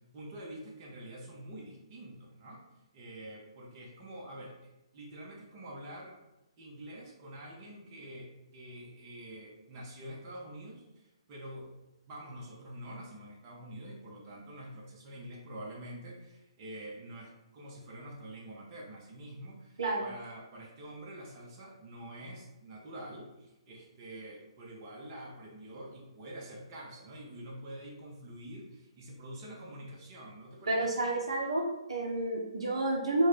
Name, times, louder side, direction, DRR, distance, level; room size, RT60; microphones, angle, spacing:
voice 1, 0.0-2.6 2.9-6.2 6.6-11.7 12.1-30.9, right 1 dB, 30° right, -2 dB, 0.9 m, -46 dB
voice 2, 30.7-33.3, right 2 dB, 75° right, 0 dB, 0.7 m, -30 dB
4.4 x 2.3 x 3.2 m, 0.95 s
figure-of-eight pair, 135°, 3 cm